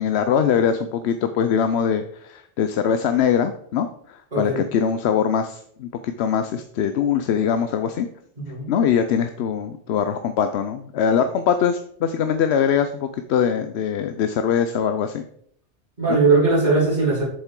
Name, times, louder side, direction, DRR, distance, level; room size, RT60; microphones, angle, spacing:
voice 1, 0.0-8.1 8.7-15.2 16.1-16.2, left 7 dB, 80° left, 9 dB, 0.8 m, -22 dB
voice 2, 4.3-4.6 8.4-8.7 16.0-17.2, right 3 dB, 45° right, -7 dB, 4.1 m, -19 dB
7.7 x 7.1 x 3.7 m, 0.67 s
omnidirectional pair, 1.1 m